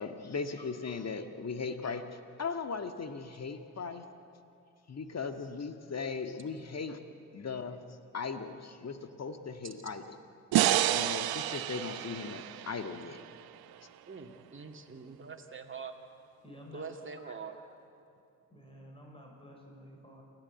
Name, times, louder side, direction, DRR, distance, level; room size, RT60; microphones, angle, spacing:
voice 1, 0.0-4.0 4.9-7.0 7.3-7.8 8.1-10.1 10.7-13.2, left 5 dB, 40° left, 8 dB, 1.8 m, -38 dB
sound 1, 10.5-13.7, right 13 dB, 65° right, 0.8 m, -30 dB
voice 2, 14.1-15.9 16.7-17.6, right 5 dB, 30° right, 3 dB, 2.5 m, -44 dB
voice 3, 16.4-17.3 18.5-20.2, equal, 15° left, 0 dB, 5.9 m, -52 dB
28.5 x 13.0 x 8.2 m, 2.7 s
hypercardioid pair, 45°, 40 cm